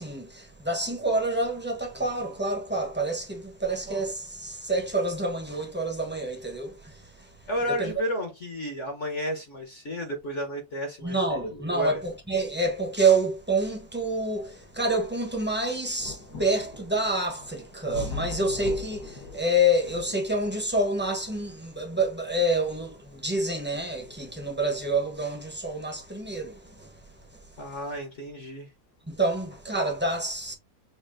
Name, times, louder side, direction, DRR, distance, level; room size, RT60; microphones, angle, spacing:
voice 1, 0.0-7.4 7.7-7.9 11.0-27.0 27.3-27.4 29.1-30.5, right 1 dB, 10° right, 0.9 m, -28 dB
voice 2, 7.5-12.0 27.6-28.7, equal, 45° left, 1.4 m, -32 dB
sound 1, 13.8-28.4 29.3-29.4, left 4 dB, 60° left, 2.1 m, -44 dB
6.6 x 2.8 x 2.6 m
omnidirectional pair, 2.0 m